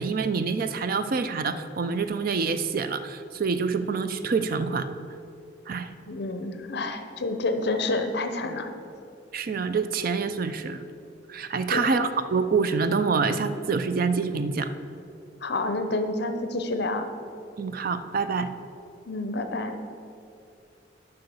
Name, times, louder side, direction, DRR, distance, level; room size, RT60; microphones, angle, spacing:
voice 1, 0.0-4.9 5.7-5.9 9.3-10.8 11.3-14.7 17.6-18.5, right 5 dB, 50° right, 12 dB, 0.4 m, -26 dB
voice 2, 6.1-8.7 11.7-12.0 15.4-17.1 19.1-19.8, left 2 dB, 60° left, 8 dB, 0.7 m, -29 dB
7.8 x 5.5 x 7.0 m, 2.5 s
head